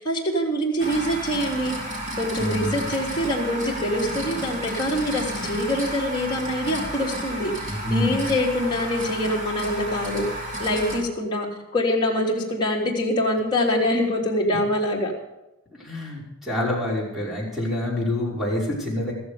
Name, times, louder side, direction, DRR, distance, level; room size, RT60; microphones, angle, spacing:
voice 1, 0.0-1.8 2.2-10.3 10.6-15.1, left 1 dB, 20° left, -3 dB, 3.4 m, -25 dB
sound 1, 0.8-11.0, right 1 dB, 35° right, 4.2 m, -32 dB
voice 2, 2.4-2.7 7.7-8.3 15.8-19.1, left 1 dB, ahead, -5 dB, 5.6 m, -27 dB
14.5 x 14.5 x 5.1 m, 0.97 s
head